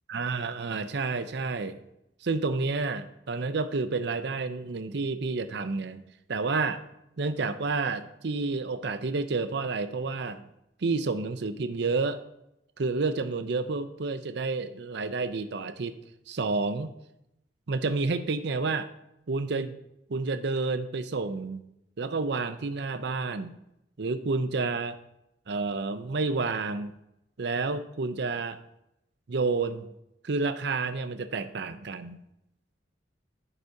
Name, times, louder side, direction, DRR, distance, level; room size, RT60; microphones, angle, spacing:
voice 1, 0.1-1.8 2.2-6.0 6.3-6.8 7.2-10.5 10.8-12.2 12.8-15.9 16.3-16.9 17.7-18.9 19.3-19.8 20.1-21.6 22.0-23.5 24.0-25.0 25.5-26.9 27.4-28.6 29.3-29.9 30.2-32.2, right 3 dB, 65° right, 11 dB, 0.6 m, -30 dB
15.0 x 5.0 x 2.7 m, 0.82 s
head